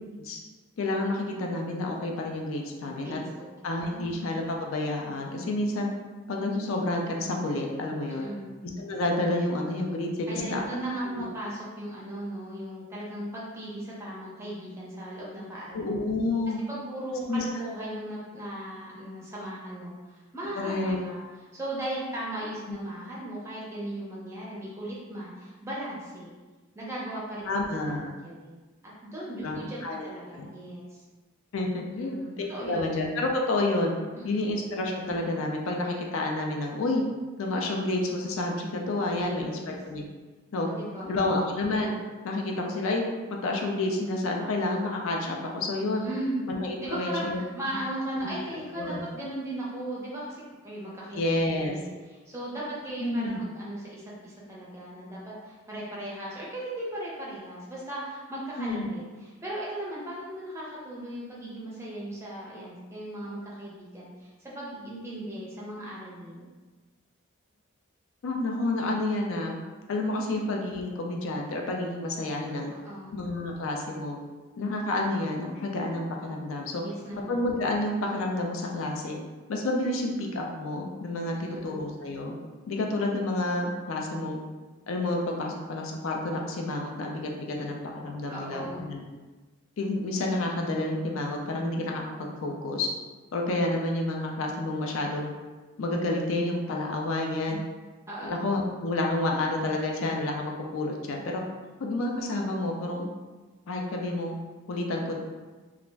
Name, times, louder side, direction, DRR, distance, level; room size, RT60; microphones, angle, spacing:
voice 1, 0.8-3.2 3.6-5.9 6.3-8.2 8.8-10.6 11.1-11.2 15.7-16.6 17.3-17.4 20.5-21.0 22.7-22.8 27.5-28.1 29.4-30.1 30.3-30.5 31.5-33.9 34.2-37.0 37.4-40.0 40.5-40.7 41.0-42.0 42.2-43.0 43.4-46.1 46.5-47.4 47.7-47.8 48.2-48.3 48.8-49.0 51.1-51.8 53.0-53.4 58.6-58.9 68.2-69.6 69.9-72.7 73.1-74.2 74.6-76.8 77.3-79.2 79.5-82.3 82.7-84.4 84.9-89.0 89.8-92.9 93.3-95.3 95.8-97.6 98.2-101.4 101.8-103.1 103.7-104.3 104.7-105.1, left 2 dB, 70° left, 1 dB, 0.4 m, -29 dB
voice 2, 3.0-3.5 3.9-4.2 8.1-8.5 10.3-15.8 16.7-21.2 21.5-26.3 26.7-27.9 28.2-31.0 31.9-32.9 34.1-34.5 39.1-39.7 40.7-41.2 46.0-46.4 46.8-51.2 51.5-66.5 72.7-73.1 76.8-77.3 81.3-81.8 88.3-88.9 97.5-97.6 98.1-98.3, right 1 dB, 10° right, -6 dB, 0.5 m, -37 dB
2.4 x 2.0 x 3.3 m, 1.3 s
head